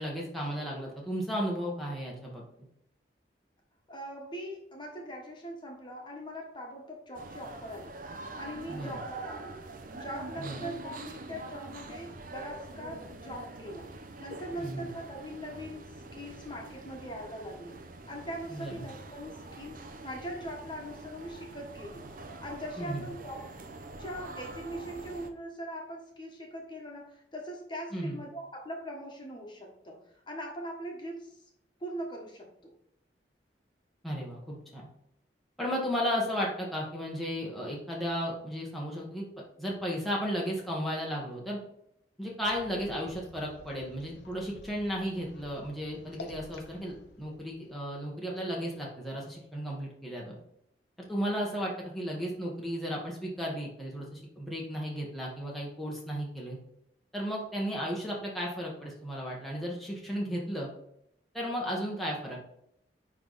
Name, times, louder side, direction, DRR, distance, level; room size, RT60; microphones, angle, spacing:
voice 1, 0.0-2.4 8.7-9.0 10.4-10.7 14.6-14.9 18.5-18.8 22.8-23.1 27.9-28.2 34.0-34.9 35.6-39.2 39.6-41.6 42.2-50.3 51.1-56.6 57.1-60.7 61.3-62.4, equal, ahead, -4 dB, 1.4 m, -34 dB
voice 2, 3.9-7.9 8.3-9.6 9.9-13.9 14.2-17.7 18.1-19.8 20.0-22.0 22.4-23.5 24.0-31.4 31.8-32.7, equal, 25° left, 0 dB, 1.6 m, -41 dB
sound 1, 7.1-25.3, right 2 dB, 50° right, 0.8 m, -45 dB
sound 2, 42.4-48.2, left 2 dB, 85° left, 1.0 m, -51 dB
9.9 x 3.6 x 4.1 m, 0.74 s
head